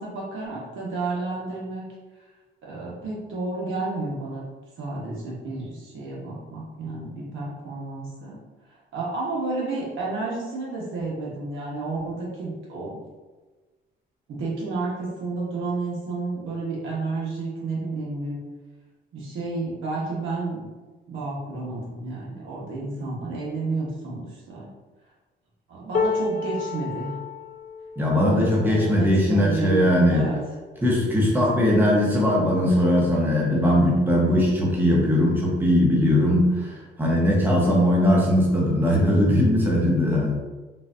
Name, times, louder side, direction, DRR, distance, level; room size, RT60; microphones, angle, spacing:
voice 1, 0.0-1.8 2.6-4.4 4.8-8.4 8.9-12.9 14.3-18.4 19.1-20.7 21.1-24.7 25.7-27.2 28.1-30.4, right 3 dB, 80° right, -5 dB, 1.1 m, -31 dB
sound 1, 25.9-32.1 32.7-32.9 33.2-33.9 34.9-35.0, left 4 dB, 45° left, 0.5 m, -33 dB
voice 2, 28.0-30.2 30.8-40.3, left 1 dB, 10° right, -4 dB, 0.9 m, -20 dB
3.9 x 2.5 x 2.5 m, 1.3 s
cardioid pair, 90°, 20 cm